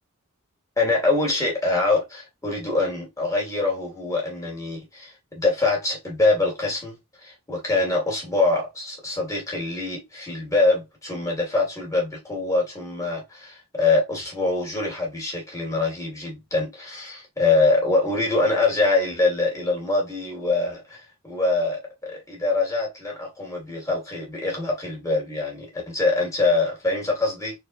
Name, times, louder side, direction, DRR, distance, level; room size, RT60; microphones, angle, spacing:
voice 1, 0.8-7.0 7.2-27.5, left 3 dB, 15° left, 2.2 m, -24 dB
4.4 x 4.3 x 2.5 m
head